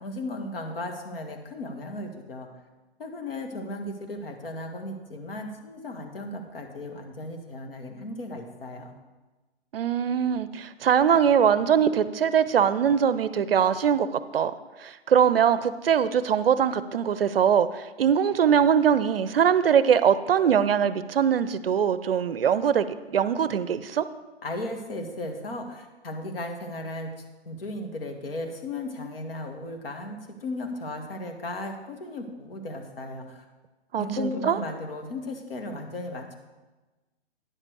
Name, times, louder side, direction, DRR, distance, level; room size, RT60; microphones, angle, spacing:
voice 1, 0.0-2.5 3.0-8.9 24.4-27.1 27.5-33.4 34.0-36.3, left 1 dB, 55° left, 4 dB, 1.7 m, -35 dB
voice 2, 9.7-14.5 14.8-24.1 33.9-34.6, right 8 dB, 60° right, 14 dB, 0.6 m, -22 dB
9.8 x 7.4 x 4.7 m, 1.2 s
figure-of-eight pair, 130°, 33 cm